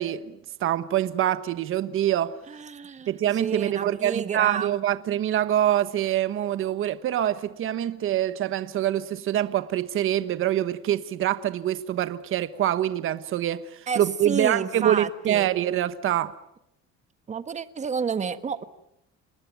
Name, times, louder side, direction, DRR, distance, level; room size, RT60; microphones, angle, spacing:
voice 1, 0.0-2.4 3.1-16.4, right 11 dB, 45° right, 1.2 m, -25 dB
voice 2, 2.6-3.1 3.4-4.7 13.9-15.5 17.3-18.6, right 6 dB, 25° right, 1.4 m, -30 dB
27.5 x 20.0 x 9.3 m
cardioid pair, 150°, 30 cm